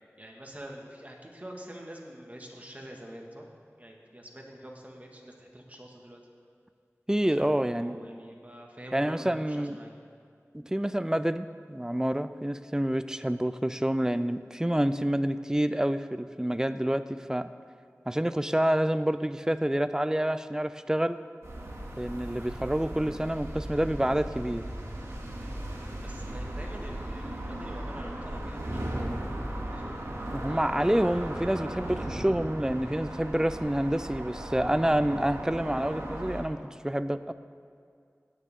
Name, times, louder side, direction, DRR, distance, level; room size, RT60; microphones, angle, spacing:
voice 1, 0.2-3.5 3.8-6.2 7.3-9.9 26.0-30.1, right 1 dB, 30° right, 0 dB, 1.9 m, -46 dB
voice 2, 7.1-8.0 8.9-9.8 10.5-17.5 18.1-21.2 22.0-24.6 30.3-37.3, right 1 dB, 10° right, 12 dB, 0.5 m, -28 dB
sound 1, 21.4-36.4, right 1 dB, 75° right, 2.3 m, -37 dB
16.0 x 9.9 x 3.7 m, 2.3 s
wide cardioid pair, 50°, 5 cm